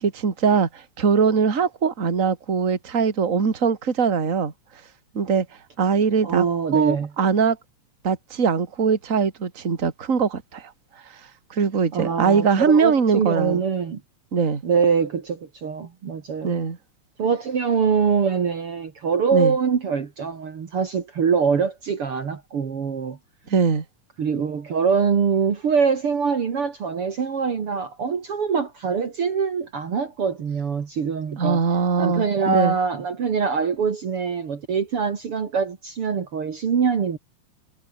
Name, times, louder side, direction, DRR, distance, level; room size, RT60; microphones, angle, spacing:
voice 1, 0.0-4.5 5.1-5.5 5.8-6.4 6.7-7.6 8.0-10.7 11.5-13.6 14.3-14.6 16.4-16.8 19.3-19.5 23.5-23.8 31.4-32.7, right 5 dB, 30° right, 2.5 m, -21 dB
voice 2, 6.2-7.1 11.9-14.0 14.6-16.6 17.2-23.2 24.2-31.6 32.0-37.2, right 6 dB, 50° right, 3.0 m, -24 dB
omnidirectional pair, 3.3 m